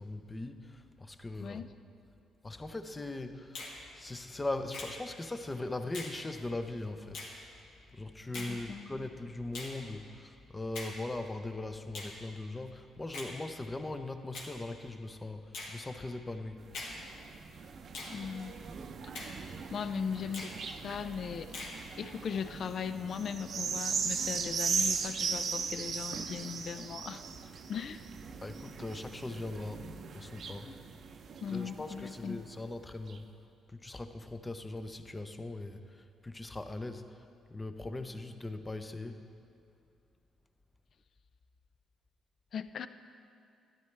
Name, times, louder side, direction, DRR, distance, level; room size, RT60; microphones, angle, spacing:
voice 1, 0.0-1.7 2.4-7.5 7.9-16.9 28.4-30.8 31.5-33.3 33.7-37.2 37.5-39.2, left 2 dB, 20° left, 8 dB, 0.6 m, -40 dB
Finger snapping, 3.5-3.8 4.7-5.0 5.9-6.2 7.1-7.3 8.3-8.6 9.5-9.8 10.7-11.0 11.9-12.1 13.1-13.3 14.3-14.5 15.5-15.8 16.7-17.0 17.9-18.2 19.1-19.4 20.3-20.6 21.5-21.8, left 2 dB, 85° left, 1.9 m, -42 dB
voice 2, 8.3-8.9 18.1-18.5 19.7-21.5 22.0-27.2 27.7-28.0 30.7-30.8 31.4-32.4 42.5-42.9, left 7 dB, 55° left, 12 dB, 0.4 m, -38 dB
sound 1, 16.6-32.4 33.1-33.2, right 5 dB, 60° right, 0.6 m, -38 dB
13.0 x 10.5 x 3.3 m, 2.5 s
cardioid pair, 90°, 0 cm